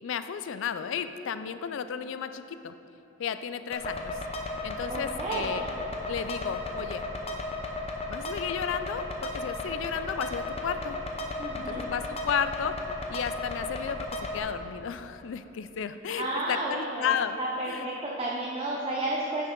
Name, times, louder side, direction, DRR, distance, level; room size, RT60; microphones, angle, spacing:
voice 1, 0.0-2.7 3.2-4.2 4.6-5.6 6.1-7.0 8.1-11.0 11.7-12.8 13.1-14.1 14.3-17.4 17.7-17.9, left 7 dB, 65° left, 11 dB, 0.3 m, -33 dB
sound 1, 3.7-14.4, left 2 dB, 30° left, 0.7 m, -35 dB
voice 2, 4.9-5.5 11.4-11.8 16.2-19.5, right 2 dB, 25° right, -4 dB, 0.7 m, -32 dB
10.0 x 6.2 x 3.7 m, 2.9 s
head